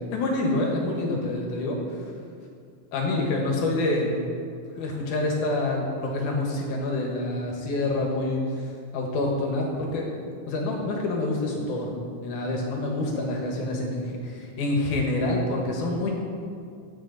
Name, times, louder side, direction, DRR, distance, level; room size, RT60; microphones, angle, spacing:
voice 1, 0.1-1.8 2.9-4.1 4.8-8.4 8.9-10.1 10.5-16.1, left 2 dB, 75° left, 0 dB, 2.8 m, -27 dB
15.0 x 6.3 x 3.9 m, 2.3 s
omnidirectional pair, 3.6 m